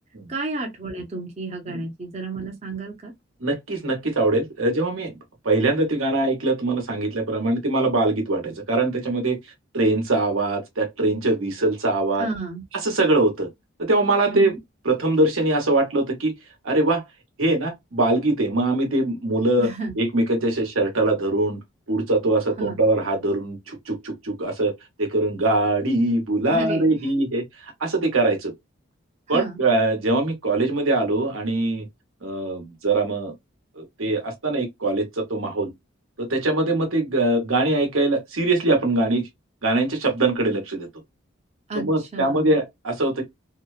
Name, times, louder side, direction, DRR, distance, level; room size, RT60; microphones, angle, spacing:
voice 1, 0.3-3.1 12.2-12.6 14.3-14.6 19.6-20.0 22.6-22.8 26.5-26.9 29.3-29.6 41.7-42.5, right 3 dB, 30° right, 0.6 m, -32 dB
voice 2, 3.4-5.2 5.4-9.4 9.7-12.3 12.7-13.5 13.8-14.5 14.8-16.3 16.6-17.0 17.4-19.7 20.0-21.6 21.9-24.7 25.0-28.5 29.3-31.9 32.2-33.3 33.8-35.7 36.2-39.3 39.6-40.9 41.7-43.2, right 2 dB, 85° right, 1.0 m, -22 dB
2.8 x 2.0 x 2.4 m
head